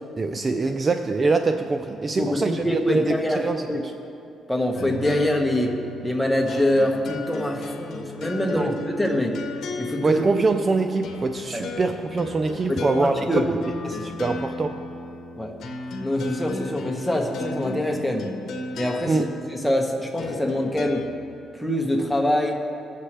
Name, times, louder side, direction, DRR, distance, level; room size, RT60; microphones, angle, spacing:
voice 1, 0.2-3.9 8.5-8.8 10.0-13.3 13.8-14.8 19.1-19.3, right 3 dB, 30° right, 7 dB, 0.5 m, -24 dB
voice 2, 2.2-3.8 4.5-9.4 9.8-10.2 11.5-11.7 12.7-13.5 15.4-15.5 16.0-18.3 18.7-21.1 21.6-22.6, left 1 dB, 5° left, 0 dB, 1.6 m, -24 dB
sound 1, 4.7-21.1, left 2 dB, 70° left, 1.1 m, -35 dB
20.0 x 7.5 x 3.4 m, 2.6 s
cardioid pair, 90°, 0 cm